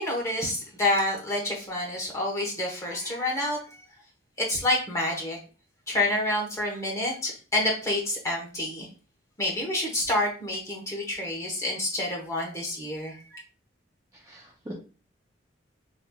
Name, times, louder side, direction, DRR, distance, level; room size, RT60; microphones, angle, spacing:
voice 1, 0.0-3.8 4.4-5.4 5.9-8.9 9.4-13.4, left 1 dB, 15° left, -1 dB, 1.0 m, -28 dB
voice 2, 14.1-14.7, right 1 dB, 15° right, -3 dB, 0.4 m, -42 dB
4.1 x 3.0 x 2.2 m, 0.36 s
head